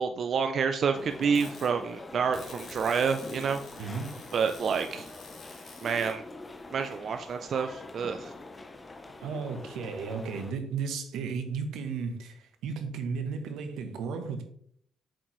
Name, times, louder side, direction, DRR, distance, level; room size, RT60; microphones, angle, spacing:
voice 1, 0.0-3.6 4.3-5.1 5.8-6.2 6.7-8.3, right 6 dB, 55° right, 0.4 m, -28 dB
sound 1, 0.9-10.5, left 2 dB, 25° left, 0.7 m, -44 dB
sound 2, 1.2-1.7 2.3-6.2, left 4 dB, 60° left, 2.0 m, -49 dB
voice 2, 3.8-4.1 9.2-14.4, right 5 dB, 85° right, 0.9 m, -34 dB
7.4 x 4.4 x 3.1 m
cardioid pair, 90°, 0 cm